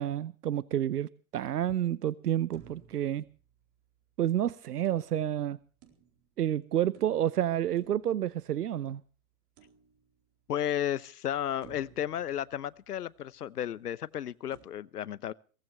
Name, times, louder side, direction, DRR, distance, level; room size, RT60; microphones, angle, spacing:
voice 1, 0.0-3.2 4.2-5.6 6.4-9.0, right 11 dB, 80° right, 0.8 m, -29 dB
sound 1, 2.5-4.1 4.8-6.5 6.9-8.9 9.6-10.4 10.9-11.0 11.6-13.3 14.5-14.6, right 8 dB, 40° right, 4.2 m, -58 dB
voice 2, 10.5-15.3, left 10 dB, 80° left, 0.9 m, -33 dB
23.0 x 17.5 x 3.2 m
hypercardioid pair, 115°, 46 cm